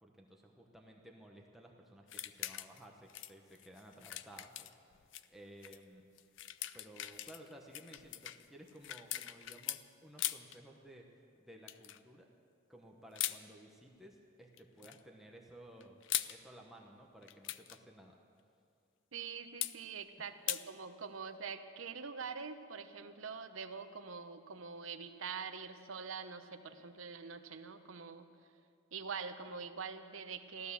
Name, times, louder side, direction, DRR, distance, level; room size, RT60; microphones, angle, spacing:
voice 1, 0.0-4.8 5.3-6.4 6.7-12.3 12.7-16.0 16.3-18.2, right 1 dB, ahead, -1 dB, 1.0 m, -56 dB
sound 1, 2.1-2.8 3.1-5.3 5.6-5.8 6.2-9.8 10.2-10.6 11.7-12.0 13.2-13.4 14.5-15.0 15.8-16.4 17.2-17.8 19.6-19.8 20.5-20.6, left 13 dB, 65° left, 0.4 m, -40 dB
voice 2, 19.1-28.3 28.9-30.7, right 5 dB, 75° right, 8 dB, 0.9 m, -44 dB
15.5 x 12.0 x 7.0 m, 2.4 s
head